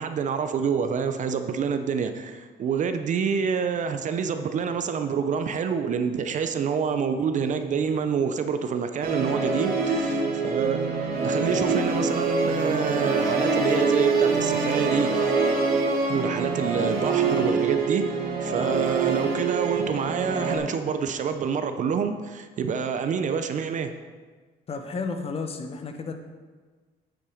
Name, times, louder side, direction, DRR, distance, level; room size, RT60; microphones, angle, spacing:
voice 1, 0.0-10.9 11.2-15.3 16.1-18.0 18.4-23.9, right 6 dB, 45° right, 8 dB, 0.6 m, -27 dB
Musical instrument, 9.0-20.6, right 4 dB, 70° right, 1.7 m, -25 dB
voice 2, 24.7-26.1, left 4 dB, 35° left, 6 dB, 1.2 m, -32 dB
8.5 x 7.9 x 5.0 m, 1.4 s
cardioid pair, 110°, 17 cm